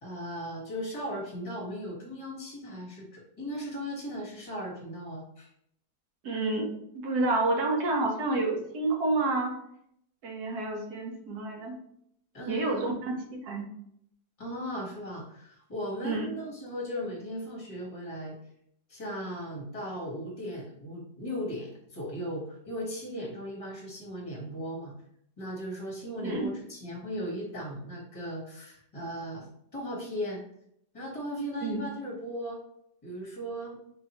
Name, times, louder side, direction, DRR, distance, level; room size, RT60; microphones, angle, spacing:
voice 1, 0.0-5.5 12.3-12.8 14.4-18.3 18.9-24.9 25.4-30.4 30.9-32.6 33.0-33.8, equal, 25° left, -4 dB, 1.1 m, -37 dB
voice 2, 6.2-6.7 6.9-9.5 10.2-11.8 12.5-13.1 13.4-13.7 16.0-16.3 26.2-26.5 31.6-31.8, right 2 dB, 70° right, 1 dB, 1.3 m, -29 dB
3.8 x 2.8 x 2.9 m, 0.72 s
omnidirectional pair, 1.8 m